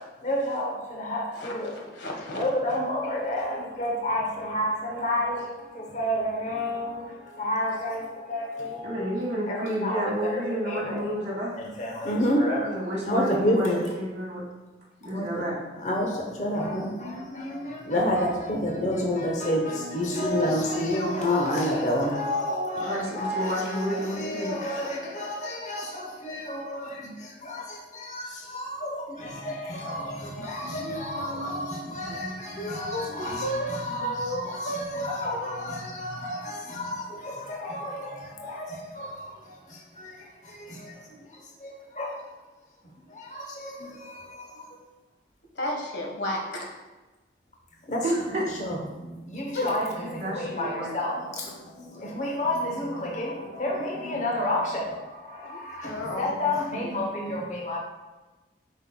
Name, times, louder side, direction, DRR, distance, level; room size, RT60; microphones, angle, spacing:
voice 1, 0.0-1.8 2.3-9.2 9.5-11.1 11.6-12.8 13.0-13.8 15.1-15.3 15.8-42.2 43.1-44.8 47.9-48.0 48.6-57.8, left 1 dB, 45° left, 0 dB, 0.8 m, -30 dB
voice 2, 1.4-2.4 7.7-7.8 32.6-33.7 34.0-35.6 45.5-46.7 49.5-49.7 55.4-56.4, equal, 85° left, 0 dB, 1.4 m, -33 dB
voice 3, 8.8-11.6 12.6-14.4 15.0-15.6 22.8-24.6 30.6-33.6 33.9-34.1 48.0-48.4 50.0-50.9 56.3-57.1, equal, 40° right, -7 dB, 1.6 m, -32 dB
7.9 x 5.4 x 2.2 m, 1.1 s
head